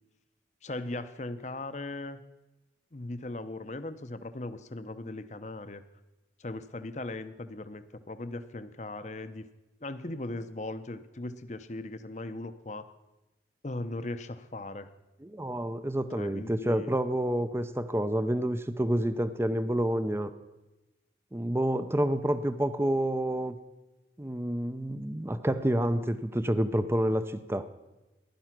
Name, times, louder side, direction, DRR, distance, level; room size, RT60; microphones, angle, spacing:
voice 1, 0.6-2.2 2.9-5.8 6.4-9.5 9.8-12.9 13.6-14.9 16.2-16.9, left 2 dB, 40° left, 11 dB, 0.8 m, -38 dB
voice 2, 15.2-20.3 21.3-23.6 24.2-27.7, right 1 dB, 15° right, 12 dB, 0.6 m, -28 dB
15.5 x 11.5 x 6.0 m, 1.1 s
head